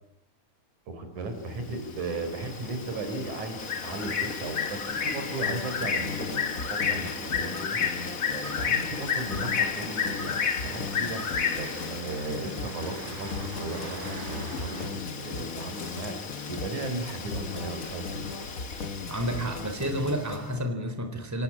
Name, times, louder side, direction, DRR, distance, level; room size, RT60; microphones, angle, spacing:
voice 1, 0.9-18.3, right 2 dB, 70° right, 7 dB, 5.6 m, -36 dB
Bird, 1.6-20.4, left 6 dB, 40° left, 1.3 m, -33 dB
sound 1, 1.9-14.9, right 3 dB, 85° right, 5.6 m, -45 dB
sound 2, 5.4-20.6, left 4 dB, 55° left, 0.9 m, -38 dB
voice 2, 19.1-21.4, equal, 5° right, 7 dB, 3.5 m, -30 dB
27.5 x 18.0 x 10.0 m, 0.84 s
omnidirectional pair, 3.6 m